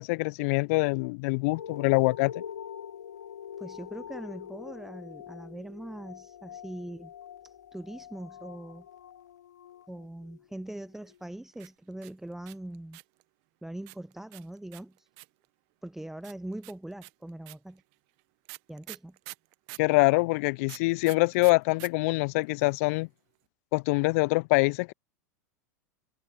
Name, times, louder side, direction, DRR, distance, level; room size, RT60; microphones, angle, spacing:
voice 1, 0.0-2.4 19.8-23.1 23.7-24.9, left 26 dB, 60° left, 0.3 m, -25 dB
sound 1, 1.6-10.5 11.1-11.2, left 9 dB, 85° left, 1.2 m, -44 dB
voice 2, 3.6-7.1 7.7-8.9 9.9-13.0 13.6-14.9 15.8-17.8 18.7-19.2, right 1 dB, 5° right, 0.6 m, -41 dB
sound 2, 11.5-13.2 13.9-15.5 16.2-19.9 20.6-21.9 22.2-22.3 22.4-22.9, right 27 dB, 55° right, 1.0 m, -46 dB
hypercardioid pair, 100°, 9 cm